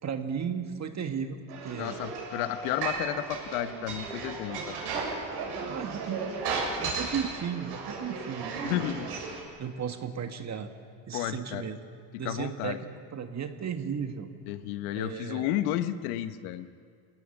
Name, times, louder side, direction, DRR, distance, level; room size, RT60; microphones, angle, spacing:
voice 1, 0.0-2.0 5.5-8.5 9.6-10.7 11.1-11.8 12.2-14.3 14.9-15.5, right 7 dB, 40° right, 6 dB, 1.6 m, -35 dB
sound 1, 1.5-9.4, right 4 dB, 70° right, 6.3 m, -35 dB
voice 2, 1.8-4.7 8.6-9.1 11.1-11.7 12.1-12.8 14.5-16.7, left 12 dB, 80° left, 11 dB, 1.2 m, -32 dB
23.5 x 18.0 x 7.2 m, 2.1 s
supercardioid pair, 90°, 43 cm